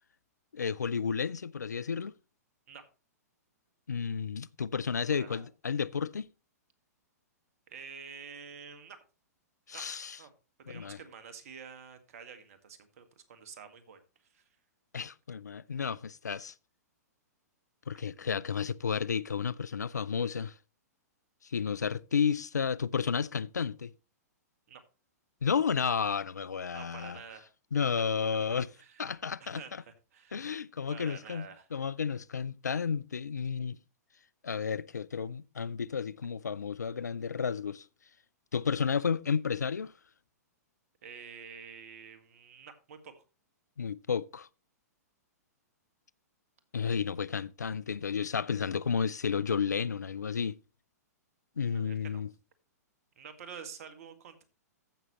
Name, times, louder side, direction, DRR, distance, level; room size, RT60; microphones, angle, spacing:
voice 1, 0.5-2.1 3.9-6.3 9.7-10.2 10.7-11.0 14.9-16.5 17.9-20.5 21.4-23.9 25.4-27.2 27.7-28.7 29.0-29.6 30.3-33.8 34.4-37.9 38.5-39.9 43.8-44.5 46.7-50.6 51.6-52.3, left 6 dB, 85° left, 0.4 m, -32 dB
voice 2, 7.7-9.0 9.7-9.8 10.2-10.3 10.6-14.0 14.3-14.5 24.7-24.8 26.7-27.5 27.9-28.0 28.8-29.1 29.4-30.5 30.9-31.7 41.0-43.1 51.7-52.2 53.2-54.4, right 6 dB, 60° right, 1.9 m, -48 dB
14.5 x 6.2 x 3.1 m
hypercardioid pair, 115°, 9 cm